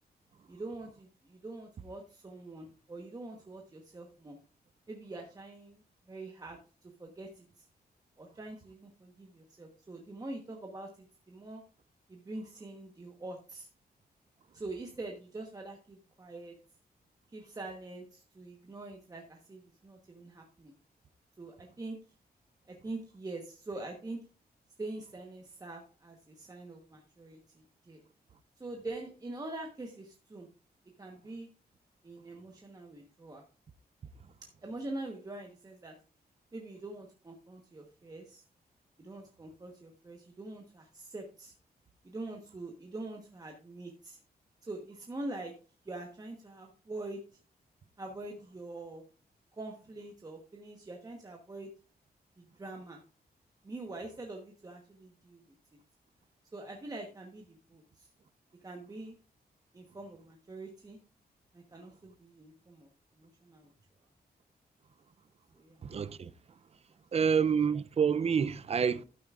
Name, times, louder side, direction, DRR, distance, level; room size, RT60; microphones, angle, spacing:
voice 1, 0.5-4.4 4.9-5.8 6.1-7.6 8.2-11.6 12.1-13.7 14.5-16.5 17.3-20.7 21.4-22.0 22.7-24.2 24.8-28.0 28.6-30.5 31.0-31.5 32.0-33.4 34.6-35.9 36.5-38.4 39.0-41.5 42.0-44.2 44.6-45.5 45.8-47.2 48.0-49.0 49.5-51.7 52.4-53.0 53.6-55.4 56.5-58.1 58.6-59.2 59.7-61.0 61.5-62.9 63.2-63.7 65.5-65.8, right 2 dB, 20° right, 1.1 m, -44 dB
voice 2, 65.8-66.3 67.1-69.0, right 6 dB, 40° right, 0.5 m, -28 dB
12.5 x 9.1 x 2.4 m
wide cardioid pair, 160°, 17 cm